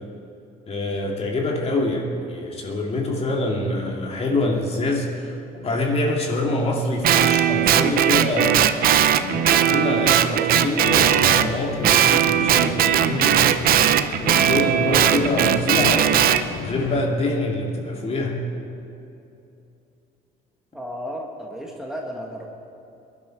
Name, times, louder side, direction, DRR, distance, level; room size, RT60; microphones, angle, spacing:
voice 1, 0.7-8.7 9.1-13.6 14.2-16.1 16.5-18.4, left 2 dB, 35° left, 0 dB, 2.4 m, -25 dB
Guitar, 7.0-11.5 11.8-16.4, right 10 dB, 60° right, 0.7 m, -18 dB
sound 1, 10.8-17.0, left 9 dB, 80° left, 0.9 m, -35 dB
voice 2, 20.7-22.5, equal, 5° right, -1 dB, 1.7 m, -33 dB
20.5 x 12.0 x 4.6 m, 2.7 s
cardioid pair, 110°, 17 cm